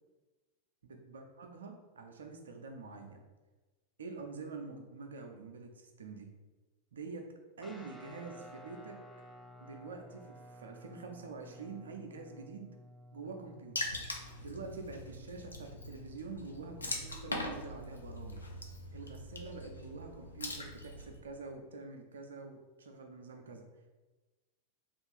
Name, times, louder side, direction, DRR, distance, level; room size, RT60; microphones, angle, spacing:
voice 1, 0.8-3.3 4.0-6.3 6.9-9.0 9.6-12.7 13.1-13.8 14.4-18.5 18.9-23.6, right 4 dB, 65° right, 4 dB, 0.5 m, -46 dB
Guitar, 7.6-17.4, equal, 5° left, 0.4 m, -55 dB
Water / Splash splatter, 13.8-21.2, left 1 dB, 80° left, 0.4 m, -42 dB
3.0 x 2.5 x 4.3 m, 1.2 s
figure-of-eight pair, 90°, 0 cm